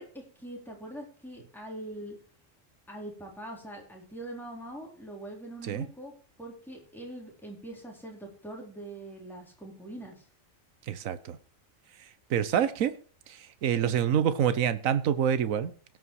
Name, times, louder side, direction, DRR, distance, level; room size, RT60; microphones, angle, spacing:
voice 1, 0.0-2.2 2.9-10.2, right 1 dB, ahead, -1 dB, 3.9 m, -43 dB
voice 2, 10.9-11.4 12.3-12.9 13.3-15.7, right 9 dB, 80° right, 13 dB, 1.3 m, -27 dB
17.5 x 5.9 x 4.7 m, 0.41 s
omnidirectional pair, 1.4 m